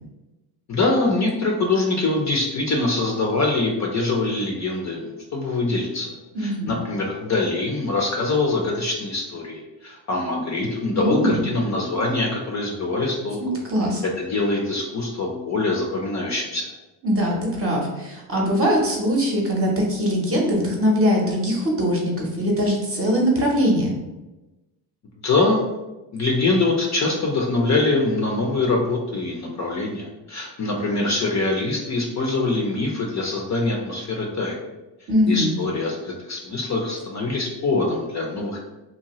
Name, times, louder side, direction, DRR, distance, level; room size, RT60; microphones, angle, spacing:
voice 1, 0.7-6.1 6.4-13.4 14.2-16.7 25.2-25.6 26.1-34.6 35.3-38.6, left 2 dB, 35° left, -1 dB, 0.5 m, -24 dB
voice 2, 6.3-6.8 10.9-11.4 13.4-14.0 17.0-23.9 35.1-35.5, equal, 30° right, -2 dB, 0.7 m, -21 dB
2.7 x 2.2 x 2.9 m, 1.0 s
cardioid pair, 95°, 49 cm